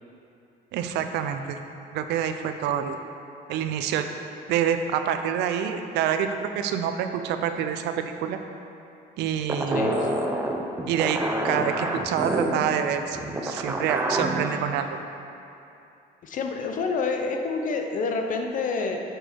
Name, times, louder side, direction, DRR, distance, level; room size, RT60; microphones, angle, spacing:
voice 1, 0.7-1.6 1.9-3.0 3.5-4.1 4.5-8.4 9.2-9.9 10.9-15.0, right 8 dB, 80° right, 7 dB, 0.5 m, -27 dB
sound 1, 9.5-14.6, right 1 dB, 15° right, 0.6 m, -28 dB
voice 2, 9.7-10.2 16.2-19.0, left 4 dB, 50° left, 3 dB, 0.8 m, -28 dB
6.8 x 6.2 x 4.5 m, 2.7 s
cardioid pair, 110°, 17 cm